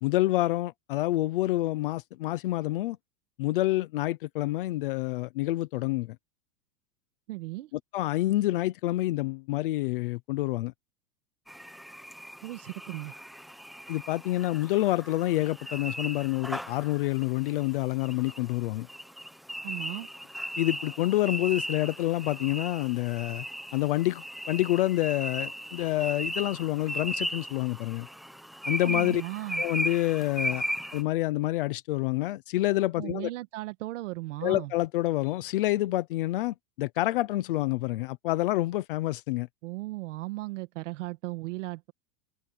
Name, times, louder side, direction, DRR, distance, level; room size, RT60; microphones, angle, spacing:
voice 1, 0.0-3.0 3.4-6.2 7.9-10.7 13.9-18.9 20.6-23.4 23.7-28.1 28.7-29.2 29.6-30.6 30.9-33.3 34.4-39.5, left 17 dB, 35° left, 0.7 m, -28 dB
voice 2, 7.3-7.7 12.4-13.1 19.6-20.1 28.8-29.6 33.0-34.7 39.6-41.9, right 20 dB, 50° right, 1.7 m, -36 dB
sound 1, 11.5-31.0, equal, ahead, 0.9 m, -37 dB
supercardioid pair, 175°, 48 cm